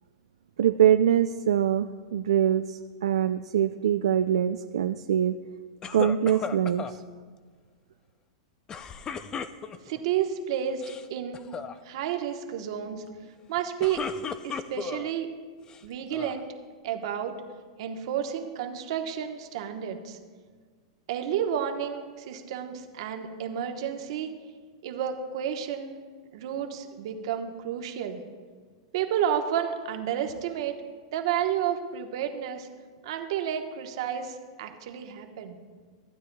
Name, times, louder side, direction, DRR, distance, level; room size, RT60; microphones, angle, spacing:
voice 1, 0.6-5.3 5.9-7.0, right 9 dB, 85° right, 8 dB, 0.3 m, -24 dB
sound 1, 5.8-7.0 8.7-10.0 10.7-11.1 11.3-11.7 13.6-15.1 15.7-16.4, left 6 dB, 25° left, 0.4 m, -36 dB
voice 2, 9.8-10.8 11.1-11.5 11.8-13.1 13.5-14.1 14.4-15.3 15.8-16.5 16.8-17.4 17.8-20.2 21.1-24.3 24.8-25.9 26.3-28.2 28.9-30.8 31.1-32.7 33.0-35.6, right 9 dB, 65° right, 5 dB, 1.1 m, -31 dB
15.0 x 9.2 x 2.3 m, 1.5 s
hypercardioid pair, 130°, 3 cm